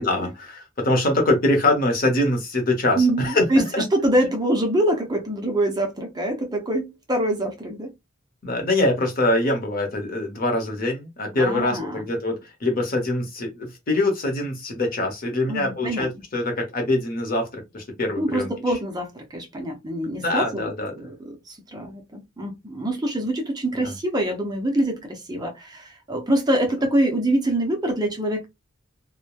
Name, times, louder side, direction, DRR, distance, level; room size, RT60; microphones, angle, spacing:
voice 1, 0.0-3.4 3.7-3.8 8.4-18.5 20.2-20.9 23.7-23.9, left 2 dB, 45° left, 0.8 m, -24 dB
voice 2, 3.0-3.6 3.9-7.9 11.4-12.0 15.5-16.1 18.2-20.7 21.0-21.1 21.5-28.5, right 1 dB, 20° right, 0.5 m, -24 dB
3.0 x 2.1 x 2.2 m
head